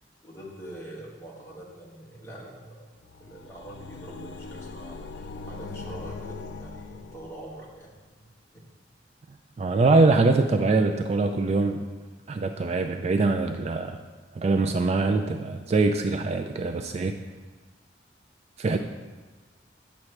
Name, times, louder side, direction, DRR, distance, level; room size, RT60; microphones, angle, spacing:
voice 1, 0.2-2.8 3.2-7.9 8.5-8.6 9.8-9.9, right 1 dB, 15° left, -4 dB, 1.4 m, -44 dB
sound 1, 3.0-7.7, left 3 dB, 70° left, 0.4 m, -40 dB
voice 2, 9.6-11.8 12.3-14.0 14.3-17.1 18.6-18.8, right 3 dB, 35° right, 6 dB, 0.3 m, -23 dB
8.2 x 6.1 x 3.2 m, 1.3 s
head